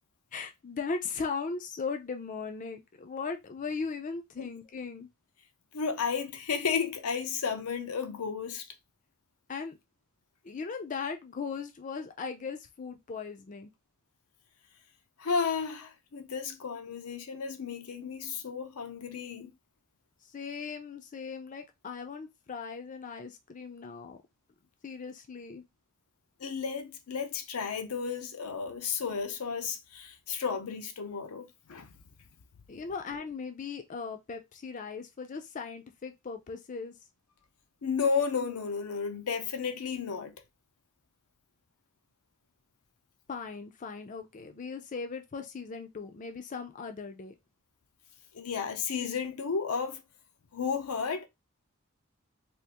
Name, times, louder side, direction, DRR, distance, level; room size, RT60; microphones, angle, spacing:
voice 1, 0.3-5.1 9.5-9.8 10.4-13.7 20.3-24.2 24.8-25.6 32.7-36.9 43.3-47.3, left 5 dB, 35° left, 0.4 m, -38 dB
voice 2, 5.7-8.7 15.2-19.5 26.4-31.9 37.8-40.3 48.3-50.0 50.5-51.3, left 5 dB, 85° left, 0.6 m, -33 dB
3.4 x 2.5 x 2.9 m
head